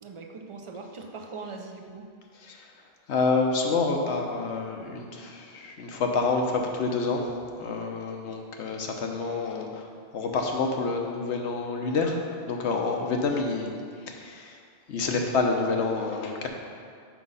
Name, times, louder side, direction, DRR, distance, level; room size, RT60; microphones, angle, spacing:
voice 1, 0.0-2.1, right 4 dB, 45° right, 4 dB, 0.4 m, -41 dB
voice 2, 3.1-7.2 7.6-13.7 14.1-14.6 14.9-16.5, left 4 dB, 90° left, 2 dB, 1.1 m, -28 dB
5.9 x 4.9 x 5.5 m, 2.2 s
omnidirectional pair, 1.1 m